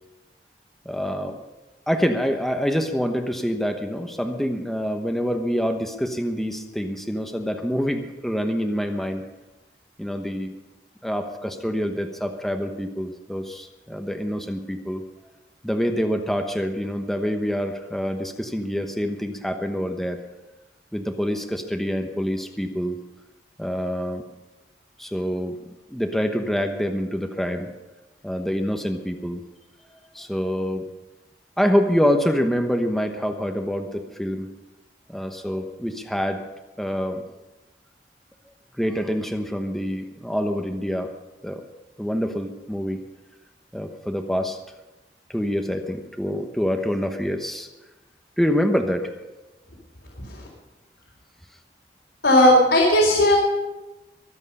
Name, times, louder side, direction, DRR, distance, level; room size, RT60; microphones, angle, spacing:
voice 1, 0.8-1.4 1.9-9.3 10.0-10.5 11.0-15.0 15.6-20.2 20.9-23.0 23.6-24.2 25.0-25.6 25.9-27.7 28.2-29.4 30.1-30.9 31.6-34.5 35.1-36.4 36.8-37.2 38.8-41.1 41.4-41.6 42.0-43.0 43.7-44.6 45.3-47.7 48.4-49.1, equal, ahead, 5 dB, 1.0 m, -26 dB
voice 2, 52.2-53.4, left 1 dB, 85° left, -5 dB, 4.1 m, -16 dB
23.0 x 8.1 x 5.5 m, 1.1 s
head